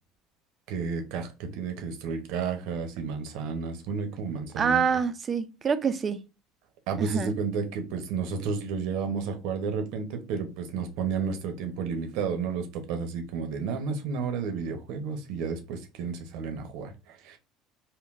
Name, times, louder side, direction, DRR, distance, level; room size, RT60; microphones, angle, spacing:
voice 1, 0.7-4.8 6.9-17.4, right 5 dB, 70° right, 0.7 m, -32 dB
voice 2, 4.6-6.2 7.0-7.3, right 6 dB, 35° right, 0.4 m, -26 dB
3.8 x 2.1 x 2.5 m
supercardioid pair, 95°, 0 cm